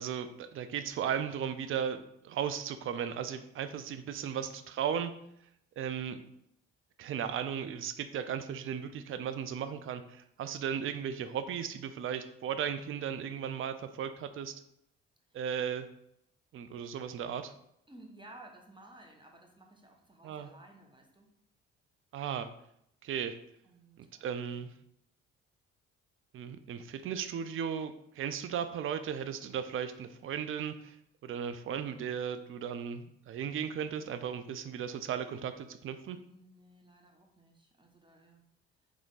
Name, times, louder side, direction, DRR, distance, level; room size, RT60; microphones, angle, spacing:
voice 1, 0.0-5.1 5.8-6.2 7.0-14.6 15.3-15.9 16.5-17.5 20.2-20.5 22.1-22.5 23.0-23.4 24.0-24.7 26.3-31.0 31.2-36.2, right 8 dB, 45° right, 11 dB, 0.5 m, -36 dB
voice 2, 17.9-21.4 23.6-24.8 36.3-38.4, right 1 dB, 15° right, 2 dB, 1.1 m, -56 dB
3.5 x 3.2 x 3.9 m, 0.74 s
supercardioid pair, 60°, 30 cm